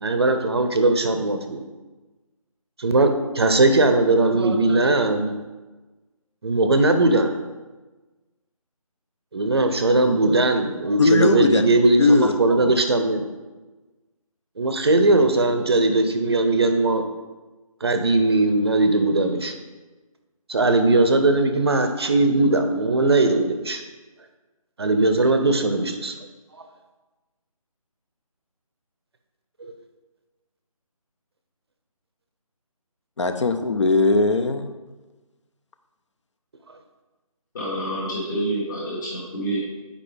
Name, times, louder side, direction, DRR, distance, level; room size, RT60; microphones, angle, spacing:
voice 1, 0.0-1.6 2.8-5.3 6.4-7.3 9.3-13.2 14.6-17.0 17.8-19.5 20.5-23.8 24.8-26.1 29.6-29.7, right 2 dB, 45° right, 7 dB, 0.6 m, -19 dB
voice 2, 11.0-11.7 12.0-12.3 33.2-34.8, left 3 dB, 50° left, 8 dB, 0.6 m, -19 dB
voice 3, 37.5-39.6, right 1 dB, 30° left, -7 dB, 1.5 m, -28 dB
7.6 x 5.0 x 3.4 m, 1.2 s
figure-of-eight pair, 160°, 19 cm